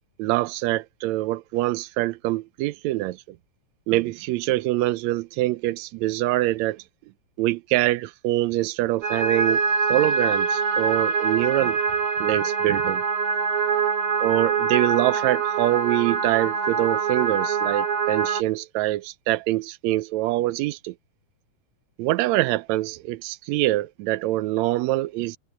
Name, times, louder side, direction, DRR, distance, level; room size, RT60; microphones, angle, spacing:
voice 1, 0.2-3.4 3.9-6.8 7.4-9.6 9.9-11.8 12.2-13.0 14.2-20.9 22.0-25.4, right 17 dB, 75° right, 1.7 m, -24 dB
sound 1, 9.0-18.4, right 5 dB, 45° right, 3.0 m, -24 dB
omnidirectional pair, 3.7 m